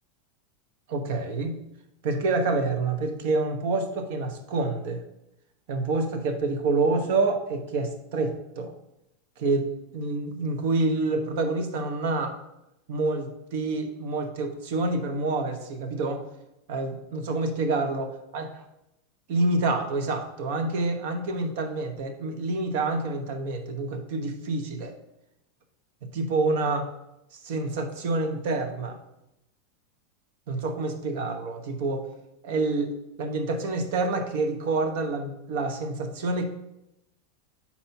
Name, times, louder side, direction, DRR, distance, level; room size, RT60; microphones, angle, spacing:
voice 1, 0.9-1.6 2.0-5.0 5.7-8.7 9.4-9.7 9.9-12.4 12.9-16.2 16.7-18.1 18.3-18.4 19.3-24.9 26.1-26.9 27.4-29.0 30.5-32.1 32.4-36.5, right 3 dB, 65° right, 6 dB, 0.9 m, -27 dB
4.3 x 4.2 x 5.6 m, 0.86 s
supercardioid pair, 135°, 0 cm